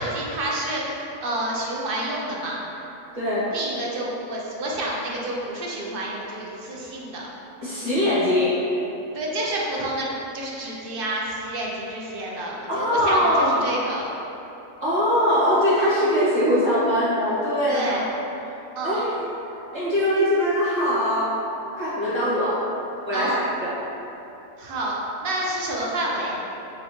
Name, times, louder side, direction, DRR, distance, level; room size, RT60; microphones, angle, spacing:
voice 1, 0.0-2.6 3.5-7.2 9.1-10.1 10.3-13.2 13.6-14.1 17.7-18.0 18.8-19.0 23.1-23.4 24.6-24.9 25.2-26.4, right 1 dB, 55° right, -3 dB, 0.7 m, -29 dB
voice 2, 3.1-3.5 7.6-8.6 12.7-13.5 14.8-18.0 18.8-19.2 19.7-21.4 21.8-22.6 23.1-23.8, equal, 20° right, -11 dB, 1.2 m, -22 dB
4.1 x 3.5 x 2.9 m, 2.9 s
omnidirectional pair, 1.4 m